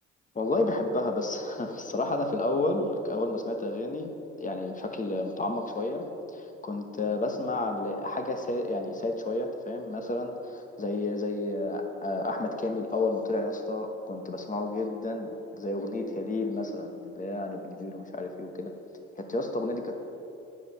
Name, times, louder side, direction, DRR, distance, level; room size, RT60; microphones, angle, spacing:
voice 1, 0.3-6.1 6.3-18.7 19.2-20.0, left 2 dB, 25° left, 4 dB, 1.1 m, -31 dB
9.6 x 5.0 x 7.0 m, 2.8 s
cardioid pair, 90°, 30 cm